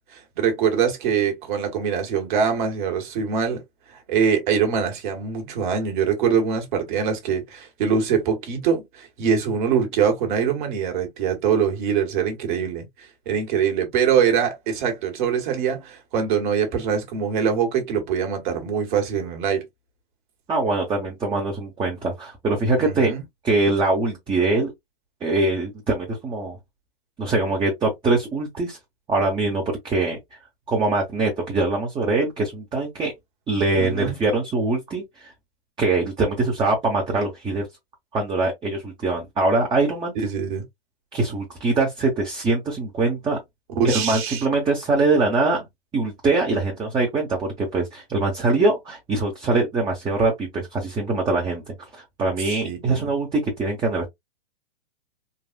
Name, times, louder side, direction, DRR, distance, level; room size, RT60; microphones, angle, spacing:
voice 1, 0.1-3.6 3.9-19.6 22.8-23.2 33.8-34.1 40.1-40.6 43.7-44.4 52.5-53.1, right 7 dB, 50° right, 1.5 m, -23 dB
voice 2, 20.5-23.1 23.4-24.7 25.2-26.6 27.2-28.8 29.1-30.2 30.7-33.1 33.5-35.3 35.8-37.7 38.1-40.1 41.1-43.4 43.8-45.7 45.9-51.6 51.9-54.1, right 3 dB, 15° right, 0.8 m, -23 dB
4.0 x 2.4 x 2.3 m
hypercardioid pair, 115°, 30 cm